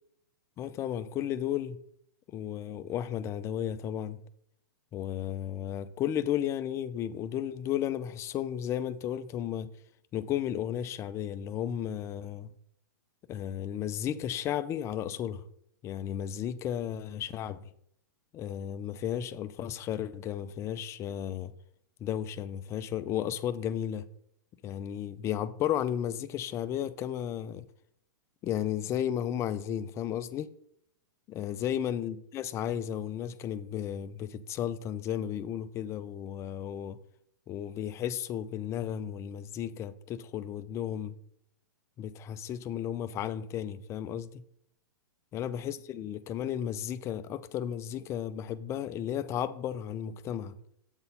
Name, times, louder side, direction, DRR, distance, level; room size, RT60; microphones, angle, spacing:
voice 1, 0.6-1.8 2.3-4.2 4.9-9.7 10.1-12.5 13.3-15.4 15.8-17.7 18.3-21.5 22.0-24.1 24.6-27.7 28.4-30.5 31.3-37.0 37.5-41.2 42.0-44.4 45.3-50.6, left 10 dB, 25° left, 0.5 m, -34 dB
7.9 x 4.0 x 5.4 m
hypercardioid pair, 115°, 11 cm